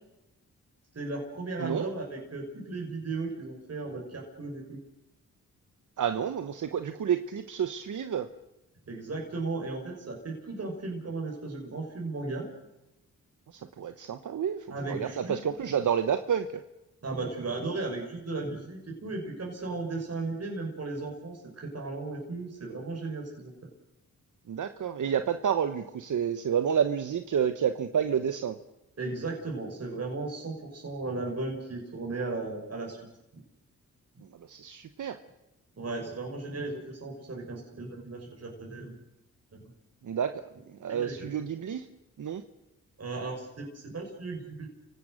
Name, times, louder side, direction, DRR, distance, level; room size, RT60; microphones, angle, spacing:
voice 1, 0.9-4.8 8.9-12.5 14.7-15.4 17.0-23.5 29.0-33.1 35.8-38.9 39.5-39.6 40.9-41.2 43.0-44.7, right 3 dB, 50° right, 0 dB, 5.9 m, -36 dB
voice 2, 1.6-1.9 6.0-8.3 13.5-16.6 24.5-28.6 34.5-35.2 40.0-40.4 40.7-41.9 42.2-42.4, right 8 dB, 65° right, 9 dB, 1.1 m, -29 dB
29.0 x 17.5 x 6.6 m, 0.95 s
cardioid pair, 70°, 33 cm